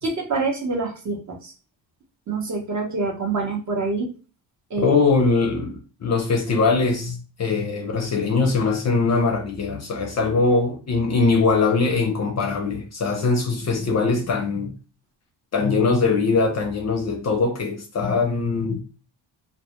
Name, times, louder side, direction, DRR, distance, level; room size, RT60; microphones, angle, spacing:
voice 1, 0.0-1.5 2.3-4.1 4.7-5.0, right 3 dB, 40° right, 0.7 m, -26 dB
voice 2, 4.8-14.8 15.5-18.8, left 4 dB, 35° left, 0.5 m, -21 dB
2.1 x 2.1 x 2.8 m
cardioid pair, 115°, 46 cm